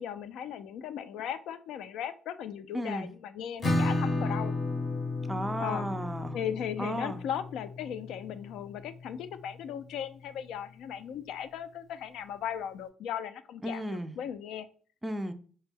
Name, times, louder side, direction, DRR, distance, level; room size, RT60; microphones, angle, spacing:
voice 1, 0.0-4.5 5.6-5.9 6.3-14.7, left 9 dB, 80° left, 0.3 m, -37 dB
voice 2, 2.7-3.1 5.3-6.4 6.8-7.2 13.6-14.1 15.0-15.3, right 1 dB, 10° right, 0.3 m, -34 dB
Acoustic guitar / Strum, 3.6-9.1, left 2 dB, 35° left, 0.6 m, -32 dB
4.3 x 2.1 x 3.3 m
cardioid pair, 125°, 0 cm